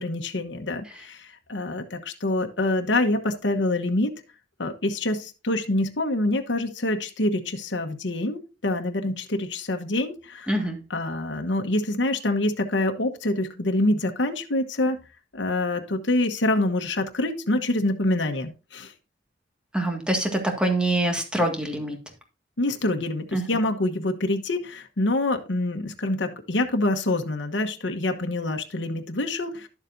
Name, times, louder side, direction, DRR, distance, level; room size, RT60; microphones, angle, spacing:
voice 1, 0.0-4.2 4.6-10.5 10.9-15.0 15.3-18.9 22.6-29.7, left 2 dB, 75° left, 4 dB, 1.1 m, -26 dB
voice 2, 10.5-10.8 19.7-22.0 23.3-23.4, right 1 dB, 5° right, 3 dB, 1.9 m, -25 dB
11.5 x 7.3 x 2.6 m, 0.31 s
head